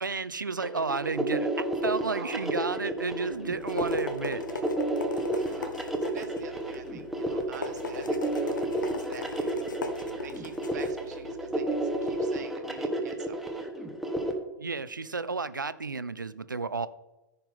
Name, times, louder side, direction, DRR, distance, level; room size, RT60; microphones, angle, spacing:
voice 1, 0.0-4.4 14.6-16.9, right 4 dB, 85° right, 15 dB, 0.4 m, -32 dB
sound 1, 0.6-14.3, right 1 dB, ahead, 1.2 m, -31 dB
voice 2, 2.1-2.5 5.2-13.4, right 6 dB, 60° right, 7 dB, 1.3 m, -47 dB
sound 2, 3.3-12.2, left 3 dB, 75° left, 1.0 m, -39 dB
14.5 x 5.6 x 3.5 m, 1.0 s
figure-of-eight pair, 95°, 10 cm